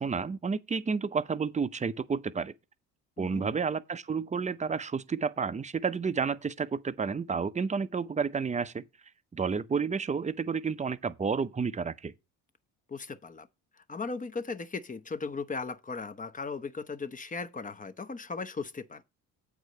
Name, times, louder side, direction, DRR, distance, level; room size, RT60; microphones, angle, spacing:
voice 1, 0.0-2.5 3.2-8.8 9.3-12.1, right 5 dB, 20° right, 0.7 m, -31 dB
voice 2, 3.2-3.5 12.9-13.5 13.8-19.0, left 4 dB, 20° left, 0.8 m, -37 dB
8.1 x 4.8 x 6.6 m
supercardioid pair, 85°, 37 cm